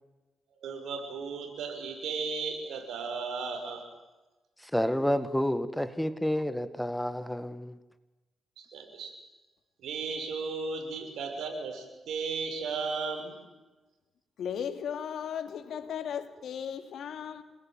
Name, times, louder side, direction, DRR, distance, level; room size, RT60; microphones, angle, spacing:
voice 1, 0.6-3.8 8.6-9.1 9.8-13.4, right 4 dB, 85° right, 6.2 m, -35 dB
voice 2, 4.7-7.7, equal, 5° left, 1.8 m, -29 dB
voice 3, 14.4-17.4, left 8 dB, 80° left, 2.5 m, -36 dB
28.0 x 20.5 x 9.2 m
cardioid pair, 80°, 0 cm